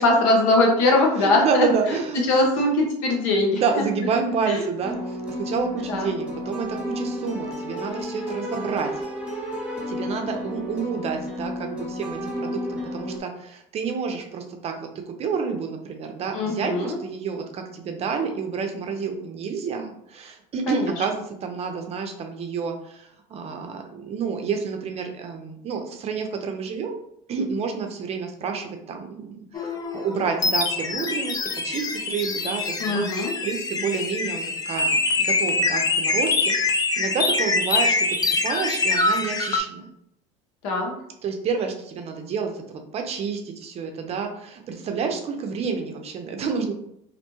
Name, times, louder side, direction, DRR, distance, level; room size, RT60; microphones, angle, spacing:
voice 1, 0.0-3.8 4.5-4.6 5.9-6.1 16.3-17.0 20.7-20.9 32.8-33.3 40.6-40.9, left 2 dB, 80° left, 1 dB, 0.8 m, -21 dB
voice 2, 1.2-2.2 3.5-8.9 9.9-27.0 27.3-33.1 33.4-38.2 38.4-39.9 41.2-46.7, right 5 dB, 40° right, 4 dB, 0.5 m, -29 dB
sound 1, 4.8-13.2, equal, 5° right, 0.8 m, -32 dB
sound 2, 29.5-39.6, left 3 dB, 25° left, 0.4 m, -24 dB
2.5 x 2.2 x 3.0 m, 0.74 s
supercardioid pair, 100°, 16 cm